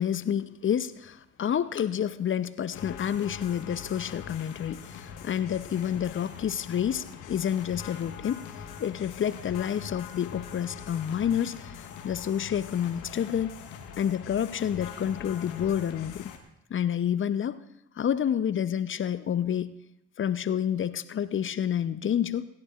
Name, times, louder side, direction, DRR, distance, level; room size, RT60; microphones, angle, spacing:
voice 1, 0.0-8.4 8.8-13.6 14.0-16.3 16.7-17.6 18.0-19.7 20.2-22.4, left 9 dB, 35° left, 14 dB, 0.7 m, -29 dB
sound 1, 2.7-16.4, left 7 dB, 65° left, 1.5 m, -43 dB
26.0 x 11.5 x 2.5 m, 0.81 s
figure-of-eight pair, 45°, 34 cm